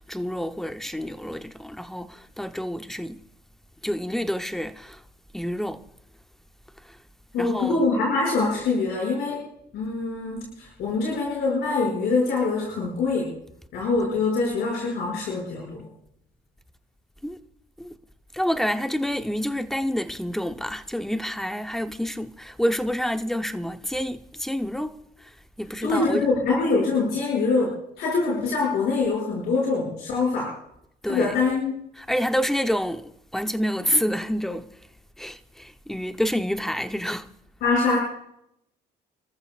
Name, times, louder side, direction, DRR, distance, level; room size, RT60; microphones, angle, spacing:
voice 1, 0.0-3.2 3.8-5.0 5.3-5.8 7.4-7.8 17.2-17.4 17.8-18.0 18.3-25.0 25.6-26.2 31.0-31.3 32.0-34.7 35.2-37.3, equal, ahead, 0.8 m, -28 dB
voice 2, 7.3-9.4 9.7-13.3 13.7-15.9 25.8-30.5 31.0-31.7 37.6-38.0, left 3 dB, 75° left, 6.7 m, -24 dB
29.5 x 14.0 x 2.5 m
cardioid pair, 110°, 17 cm